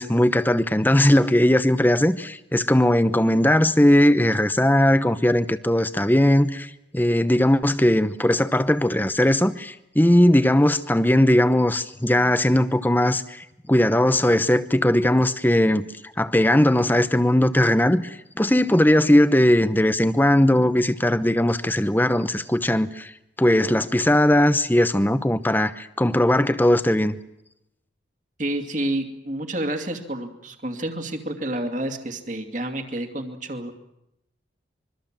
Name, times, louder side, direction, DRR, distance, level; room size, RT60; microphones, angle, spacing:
voice 1, 0.0-15.9 16.2-23.1 23.4-27.2, left 1 dB, 10° left, 0.9 m, -19 dB
voice 2, 28.4-33.7, right 1 dB, 40° right, 2.5 m, -29 dB
25.5 x 23.5 x 7.5 m
head